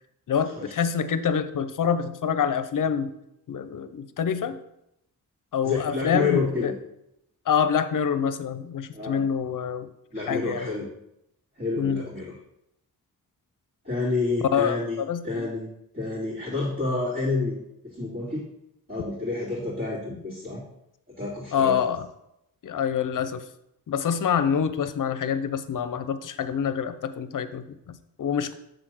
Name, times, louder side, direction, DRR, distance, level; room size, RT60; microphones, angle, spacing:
voice 1, 0.3-3.1 3.5-4.6 5.5-6.7 7.5-9.9 10.3-10.7 11.8-12.0 14.5-15.5 21.5-22.1 22.6-23.4 23.9-28.5, left 7 dB, 60° left, 12 dB, 0.6 m, -26 dB
voice 2, 5.6-6.7 8.9-9.2 10.1-10.9 11.6-12.3 13.8-15.0 15.2-15.7 15.9-18.4 18.9-20.6 21.2-21.8, left 3 dB, 35° right, -11 dB, 3.0 m, -29 dB
6.9 x 3.9 x 6.2 m, 0.83 s
cardioid pair, 85°, 36 cm